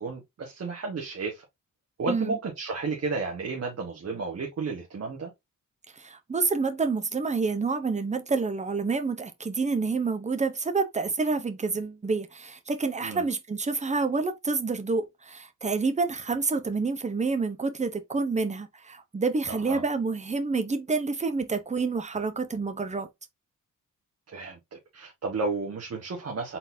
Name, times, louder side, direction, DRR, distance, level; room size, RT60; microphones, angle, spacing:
voice 1, 0.0-1.4 2.0-5.3 13.0-13.2 19.5-19.8 24.3-26.6, right 4 dB, 50° right, 1.3 m, -32 dB
voice 2, 2.1-2.4 6.0-23.1, right 4 dB, 20° right, 0.8 m, -28 dB
4.2 x 3.9 x 2.7 m
cardioid pair, 105°, 32 cm